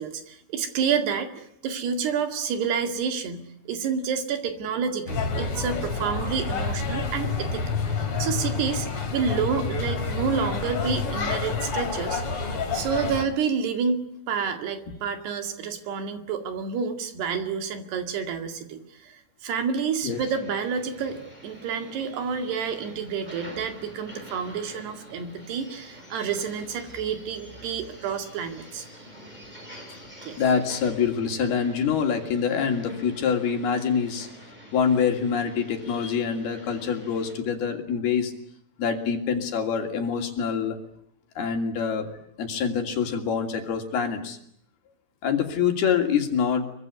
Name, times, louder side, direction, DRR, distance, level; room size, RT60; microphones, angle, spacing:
voice 1, 0.0-8.9 9.1-12.2 12.7-28.9 30.2-30.4, right 6 dB, 70° right, 7 dB, 4.2 m, -29 dB
sound 1, 5.1-13.2, left 4 dB, 35° left, 3.6 m, -28 dB
sound 2, 20.1-37.3, equal, 10° right, 5.7 m, -46 dB
voice 2, 30.4-34.3 34.7-38.3 38.8-40.8 41.4-42.1 42.4-44.4 45.2-46.8, left 7 dB, 65° left, 4 dB, 4.6 m, -25 dB
25.0 x 24.0 x 9.6 m, 0.71 s
omnidirectional pair, 5.0 m